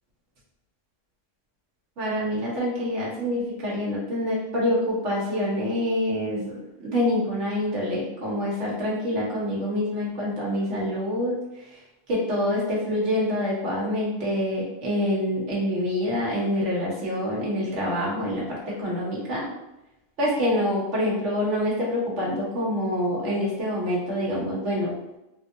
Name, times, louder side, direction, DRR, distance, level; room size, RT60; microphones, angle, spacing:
voice 1, 2.0-6.6 6.8-11.4 12.1-19.5 20.2-24.9, left 1 dB, 70° right, -5 dB, 1.4 m, -26 dB
3.5 x 2.6 x 2.7 m, 0.94 s
omnidirectional pair, 1.3 m